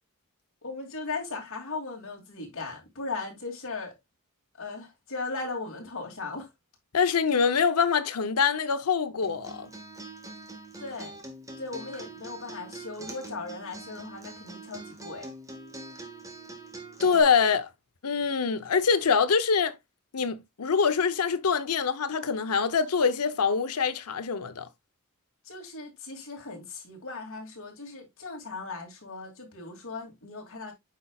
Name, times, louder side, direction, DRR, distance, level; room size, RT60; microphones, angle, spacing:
voice 1, 0.6-3.9 4.6-6.5 10.8-11.2 11.6-15.3 25.4-30.7, left 3 dB, 65° left, 2.6 m, -38 dB
voice 2, 6.9-9.7 17.0-17.7 18.0-19.7 20.1-24.7, left 6 dB, 85° left, 0.8 m, -24 dB
Acoustic guitar, 9.2-17.2, right 2 dB, 15° right, 1.4 m, -43 dB
8.3 x 5.4 x 2.3 m
head